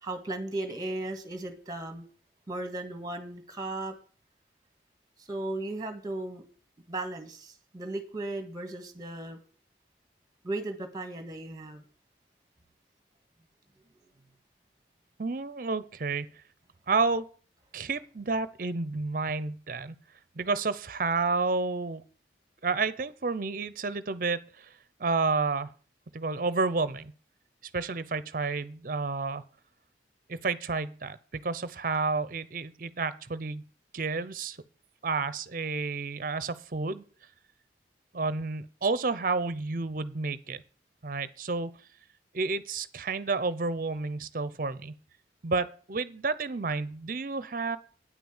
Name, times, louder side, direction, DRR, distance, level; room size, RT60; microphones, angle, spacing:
voice 1, 0.0-2.0 2.5-3.9 5.2-6.4 6.9-9.4 10.4-11.8, right 2 dB, 20° right, 8 dB, 1.6 m, -36 dB
voice 2, 15.2-16.3 16.9-17.3 17.7-19.9 20.3-22.0 22.6-24.7 25.0-25.7 26.1-27.1 27.7-29.4 30.3-33.7 33.9-34.6 35.0-37.0 38.1-40.6 41.0-41.7 42.3-45.0 45.4-47.8, right 4 dB, 50° right, 16 dB, 0.6 m, -30 dB
9.5 x 6.0 x 7.1 m, 0.40 s
head